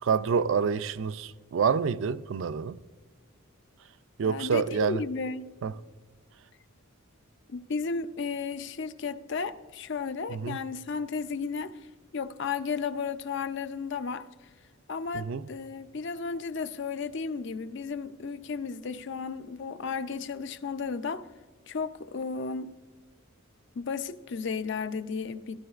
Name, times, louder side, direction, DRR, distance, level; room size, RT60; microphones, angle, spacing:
voice 1, 0.0-2.8 4.2-5.0 5.6-5.7 10.3-10.6 15.1-15.4, right 6 dB, 60° right, 0.4 m, -27 dB
voice 2, 4.2-5.5 7.5-11.8 12.1-14.3 14.9-21.2 21.7-22.7 23.8-25.6, left 5 dB, 55° left, 0.5 m, -34 dB
16.0 x 13.0 x 2.4 m
head